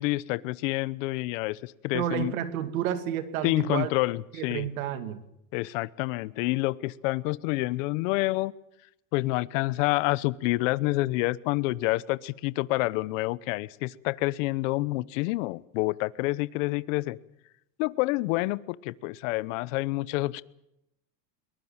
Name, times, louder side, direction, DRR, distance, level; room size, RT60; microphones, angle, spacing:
voice 1, 0.0-2.3 3.4-4.7 5.5-8.5 9.1-17.2 17.8-20.4, left 20 dB, 65° left, 19 dB, 1.0 m, -28 dB
voice 2, 1.9-3.9 4.3-5.2, right 10 dB, 85° right, 10 dB, 2.4 m, -30 dB
22.5 x 20.5 x 7.3 m, 0.83 s
supercardioid pair, 135°, 40 cm